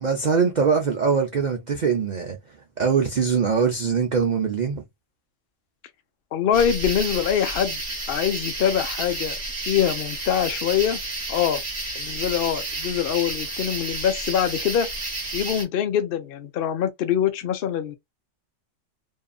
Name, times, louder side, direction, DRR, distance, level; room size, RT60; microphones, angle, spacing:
voice 1, 0.0-2.4 2.8-4.8, right 6 dB, 80° right, 0.4 m, -22 dB
voice 2, 6.3-7.8 8.1-9.4 9.7-11.0 11.3-11.6 11.9-14.9 15.3-17.9, left 9 dB, 60° left, 0.6 m, -24 dB
sound 1, 6.5-15.6, right 2 dB, 35° right, 0.9 m, -31 dB
2.8 x 2.5 x 2.3 m
omnidirectional pair, 1.5 m